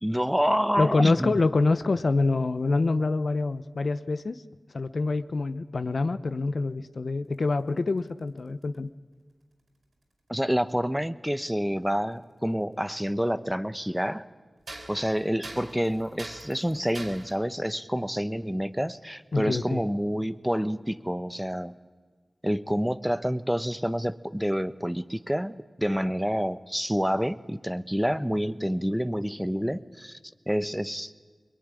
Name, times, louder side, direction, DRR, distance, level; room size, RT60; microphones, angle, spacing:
voice 1, 0.0-1.4 10.3-14.3 14.9-21.7 22.4-30.2 30.5-31.1, equal, 5° right, 13 dB, 1.0 m, -28 dB
voice 2, 0.8-4.4 4.7-8.9 19.3-19.8, left 3 dB, 70° left, 11 dB, 0.8 m, -26 dB
sound 1, 7.3-8.7 10.0-10.1 12.2-12.3 13.1-13.2 14.6-17.3, right 2 dB, 75° right, 5.2 m, -43 dB
22.5 x 22.5 x 9.8 m, 1.5 s
cardioid pair, 40°, 0 cm